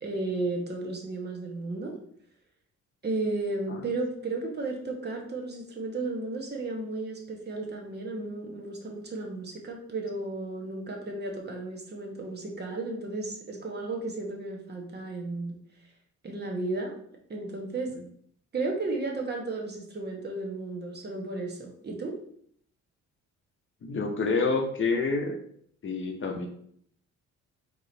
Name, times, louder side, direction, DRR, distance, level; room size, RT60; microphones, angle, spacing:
voice 1, 0.0-2.0 3.0-15.5 16.2-16.9 17.3-17.9 18.5-22.1, right 2 dB, 35° right, 1 dB, 1.0 m, -34 dB
voice 2, 23.8-25.4 25.8-26.5, left 4 dB, 40° left, 4 dB, 0.7 m, -28 dB
3.8 x 3.1 x 3.8 m, 0.62 s
cardioid pair, 90°, 30 cm